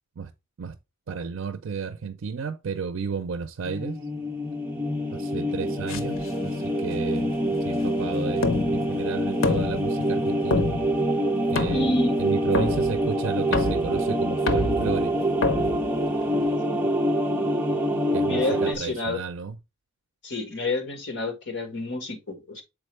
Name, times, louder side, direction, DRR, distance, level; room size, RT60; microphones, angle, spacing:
voice 1, 1.1-4.0 5.1-7.3 7.6-10.7 11.5-15.1 18.1-19.6, right 6 dB, 70° right, 0.4 m, -33 dB
sound 1, 3.6-18.8, right 1 dB, 10° right, 0.7 m, -26 dB
voice 2, 5.3-5.8 11.7-12.2 16.4-16.9 18.2-19.2 20.2-22.6, left 2 dB, 60° left, 1.5 m, -29 dB
sound 2, 5.9-16.6, left 3 dB, 85° left, 0.8 m, -30 dB
6.9 x 4.3 x 3.2 m
head